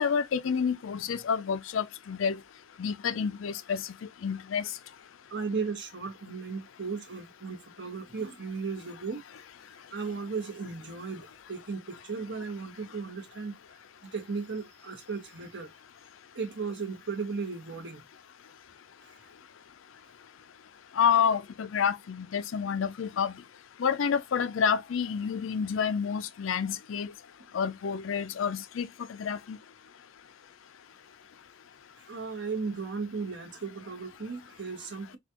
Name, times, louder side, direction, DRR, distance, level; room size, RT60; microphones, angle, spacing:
voice 1, 0.0-2.4 2.8-3.9 4.2-4.6 21.0-23.3 23.8-27.1 27.5-29.6, left 7 dB, 70° left, 0.4 m, -29 dB
voice 2, 5.3-9.2 9.9-13.6 14.0-15.7 16.3-18.0 19.0-19.3 32.0-35.2, right 4 dB, 60° right, 1.1 m, -36 dB
4.0 x 2.4 x 2.9 m
head